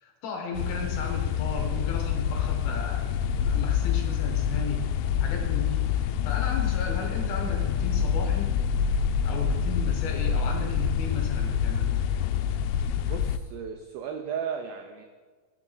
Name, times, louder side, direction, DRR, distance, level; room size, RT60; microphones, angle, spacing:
voice 1, 0.0-3.0 3.4-4.8 5.2-8.5 9.3-12.1, left 3 dB, 70° left, 2 dB, 2.7 m, -35 dB
sound 1, 0.5-13.4, left 8 dB, 90° left, 2.9 m, -26 dB
sound 2, 4.2-10.2, right 2 dB, 35° left, 3.3 m, -58 dB
voice 2, 13.0-15.0, right 7 dB, 90° right, 5 dB, 2.1 m, -35 dB
18.5 x 6.7 x 4.0 m, 1.5 s
omnidirectional pair, 5.1 m